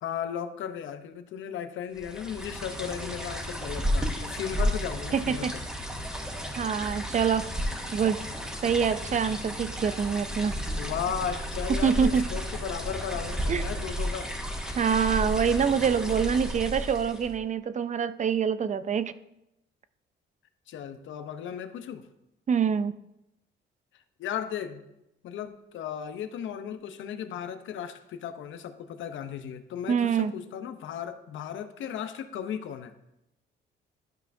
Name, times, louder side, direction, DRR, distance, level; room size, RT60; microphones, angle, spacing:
voice 1, 0.0-5.6 10.8-14.3 20.7-22.1 23.9-24.9 25.2-32.9, left 8 dB, 75° left, 9 dB, 0.7 m, -36 dB
sound 1, 2.0-17.4, equal, 5° right, 1.6 m, -33 dB
voice 2, 5.1-5.5 6.6-7.5 7.9-8.2 8.6-10.6 11.8-12.2 13.5-13.6 14.8-19.1 22.5-22.9 29.9-30.3, right 7 dB, 40° right, 13 dB, 0.4 m, -25 dB
12.0 x 5.5 x 2.6 m, 0.87 s
cardioid pair, 90°, 20 cm